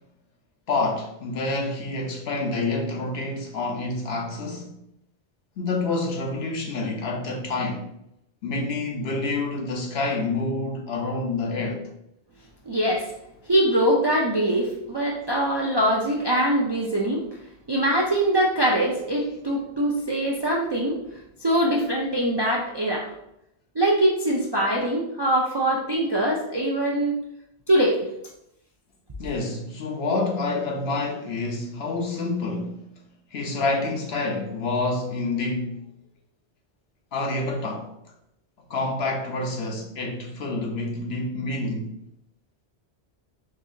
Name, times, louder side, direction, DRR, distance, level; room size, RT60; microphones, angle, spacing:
voice 1, 0.7-4.7 5.6-7.9 8.4-11.9 29.2-32.8 33.3-35.8 37.1-37.9 38.7-41.9, left 3 dB, 70° left, 1.0 m, -28 dB
voice 2, 12.7-13.1 13.5-17.2 17.7-21.0 21.4-23.1 23.8-27.2 27.7-28.0, right 1 dB, 45° right, 0.3 m, -23 dB
4.0 x 2.8 x 2.6 m
omnidirectional pair, 1.1 m